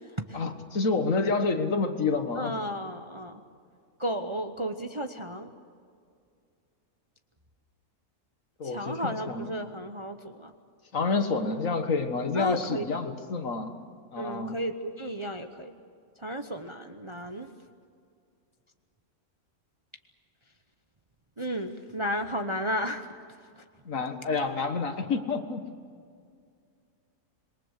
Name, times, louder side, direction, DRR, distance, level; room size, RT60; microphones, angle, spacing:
voice 1, 0.3-2.6 8.6-9.5 10.9-13.8 14.1-14.6 23.9-25.7, left 4 dB, 60° left, 7 dB, 1.9 m, -28 dB
voice 2, 2.3-3.4 4.0-5.5 8.6-10.5 12.3-12.8 14.2-15.7 16.2-17.5 21.4-23.1, equal, 25° right, 6 dB, 0.9 m, -33 dB
27.0 x 22.5 x 6.6 m, 2.3 s
omnidirectional pair, 1.6 m